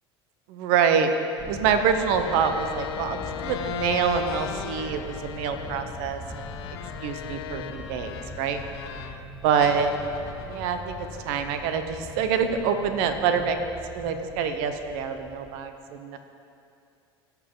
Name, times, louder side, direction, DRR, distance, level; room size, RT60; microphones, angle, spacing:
voice 1, 0.5-1.1 1.5-6.4 7.0-8.6 9.4-9.9 10.4-13.6 13.9-15.7 16.0-16.2, right 7 dB, 65° right, 8 dB, 0.9 m, -26 dB
Thunder, 1.4-15.6, left 2 dB, 20° left, 1.4 m, -42 dB
sound 1, 1.9-9.3 9.6-12.0, left 10 dB, 75° left, 0.6 m, -38 dB
sound 2, 3.8-14.3, right 1 dB, 25° right, 1.8 m, -46 dB
16.5 x 5.8 x 3.7 m, 2.5 s
hypercardioid pair, 80°, 13 cm